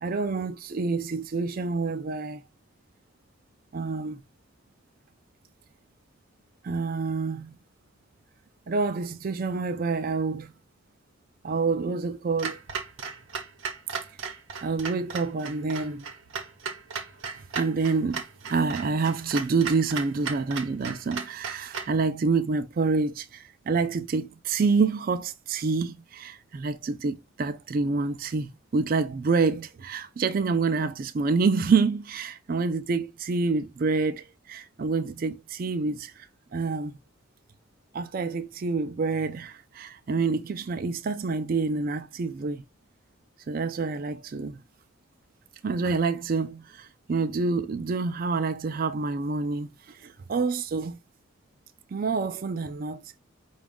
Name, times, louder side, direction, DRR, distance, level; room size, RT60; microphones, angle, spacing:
voice 1, 0.0-2.4 3.7-4.2 6.6-7.6 8.7-10.5 11.4-12.6 14.6-16.0 17.5-36.3 36.5-37.0 37.9-42.6 43.5-44.6 45.6-51.0 51.9-53.0, right 4 dB, 45° right, 0.4 m, -27 dB
Clock, 12.4-22.0, right 5 dB, 65° right, 0.8 m, -36 dB
5.0 x 2.4 x 3.5 m
head